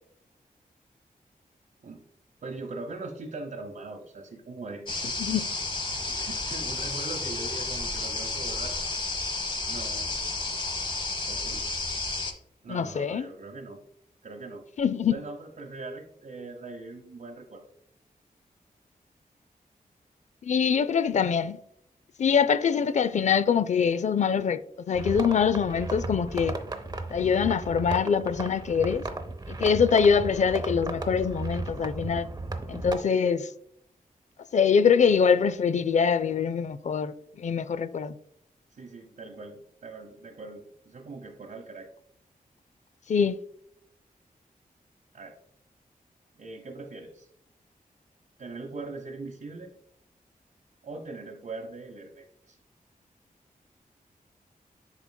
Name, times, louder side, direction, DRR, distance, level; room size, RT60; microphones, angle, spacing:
voice 1, 2.4-5.2 6.1-8.7 9.7-10.1 11.3-11.7 12.6-13.8 14.2-14.6 15.1-17.6 38.7-41.9 45.1-45.4 46.4-47.3 48.4-49.7 50.8-52.6, right 3 dB, 65° right, 0.9 m, -41 dB
sound 1, 4.9-12.3, left 3 dB, 35° left, 0.9 m, -31 dB
voice 2, 12.7-13.3 14.8-15.1 20.4-21.6 22.2-24.6 24.9-26.6 27.1-29.0 29.5-32.3 32.7-33.5 34.5-38.1 43.1-43.4, left 6 dB, 55° left, 0.4 m, -24 dB
sound 2, 24.9-33.0, right 2 dB, 25° right, 0.7 m, -35 dB
10.5 x 4.4 x 2.2 m
wide cardioid pair, 115°, 15 cm